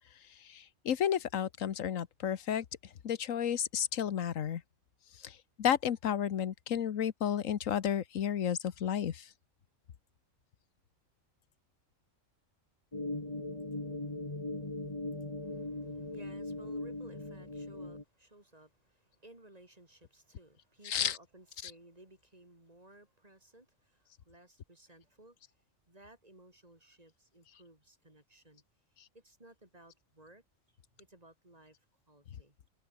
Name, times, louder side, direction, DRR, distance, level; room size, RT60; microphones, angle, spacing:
voice 1, 0.5-2.6 3.0-4.6 5.2-5.3 5.6-9.2 20.8-21.2 21.6-21.7, left 9 dB, 75° left, 1.4 m, -32 dB
sound 1, 12.9-18.0, left 2 dB, 20° left, 2.4 m, -39 dB
voice 2, 15.4-28.6 28.9-30.4 30.7-31.8 32.1-32.6, right 1 dB, 30° right, 4.4 m, -58 dB
omnidirectional pair, 1.4 m